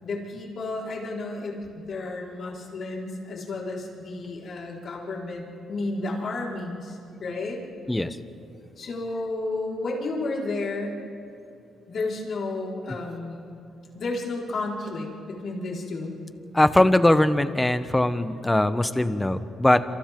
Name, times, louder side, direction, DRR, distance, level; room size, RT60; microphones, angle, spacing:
voice 1, 0.0-7.6 8.8-11.0 11.9-13.5 13.9-16.1, left 2 dB, 55° left, -3 dB, 4.7 m, -32 dB
voice 2, 16.5-19.8, left 1 dB, 10° left, 11 dB, 1.0 m, -21 dB
27.5 x 26.5 x 3.8 m, 2.6 s
cardioid pair, 90°, 0 cm